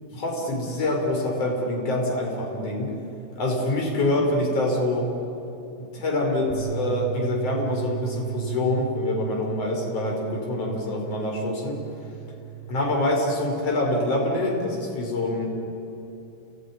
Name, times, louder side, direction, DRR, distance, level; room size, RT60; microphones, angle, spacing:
voice 1, 0.2-2.9 3.4-5.1 5.8-11.8 12.7-15.5, left 1 dB, 30° left, 0 dB, 5.1 m, -25 dB
Bass guitar, 6.5-12.7, right 13 dB, 10° left, 3.0 m, -35 dB
29.0 x 19.0 x 9.7 m, 2.9 s
omnidirectional pair, 5.6 m